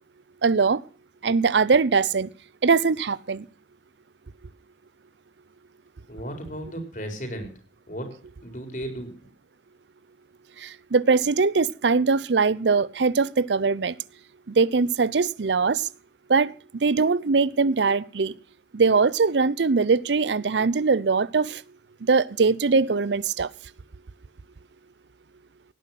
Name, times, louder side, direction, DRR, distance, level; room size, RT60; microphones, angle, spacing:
voice 1, 0.4-0.8 1.2-2.3 2.6-3.4 10.6-13.9 14.6-15.8 16.3-16.5 16.8-18.3 18.7-21.6 22.1-23.5, right 4 dB, 85° right, 0.6 m, -21 dB
voice 2, 6.1-7.5 7.9-8.1 8.4-9.1, equal, 45° left, 4.6 m, -34 dB
17.5 x 9.9 x 5.8 m
head